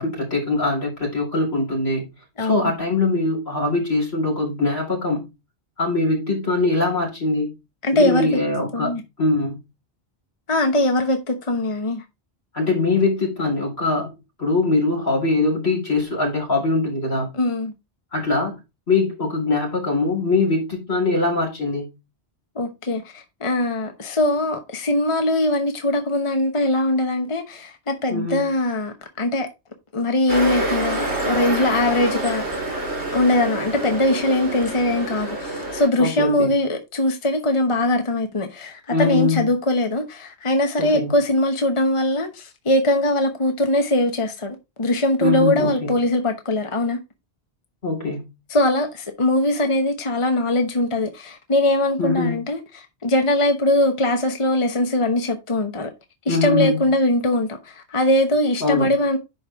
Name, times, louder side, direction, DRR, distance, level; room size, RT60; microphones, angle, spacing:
voice 1, 0.0-2.1 2.4-5.3 5.8-7.5 7.9-9.6 12.5-14.1 14.4-17.3 18.1-18.6 18.9-21.9 28.1-28.4 36.0-36.5 38.9-39.5 40.8-41.2 45.2-46.0 47.8-48.3 52.0-52.3 56.3-56.8 58.6-58.9, left 3 dB, 70° left, 4.5 m, -22 dB
voice 2, 2.4-2.7 7.8-8.3 8.7-9.0 10.5-12.0 17.3-17.7 22.6-29.5 29.9-32.5 32.7-32.8 33.1-47.0 48.5-55.9 56.3-59.2, left 1 dB, 30° left, 1.0 m, -21 dB
sound 1, 30.3-35.9, right 1 dB, 80° right, 4.8 m, -27 dB
10.5 x 4.6 x 3.5 m
omnidirectional pair, 1.1 m